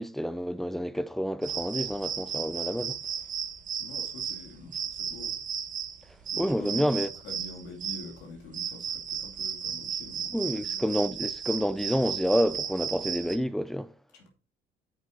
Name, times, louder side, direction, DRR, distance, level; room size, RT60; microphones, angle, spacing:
voice 1, 0.0-3.0 6.4-7.1 10.3-13.9, equal, ahead, 0.5 m, -28 dB
sound 1, 1.4-13.4, right 8 dB, 50° right, 1.4 m, -35 dB
voice 2, 3.8-5.4 6.3-11.0 14.1-14.3, left 2 dB, 90° left, 2.6 m, -46 dB
10.0 x 5.4 x 3.9 m
cardioid pair, 110°, 17 cm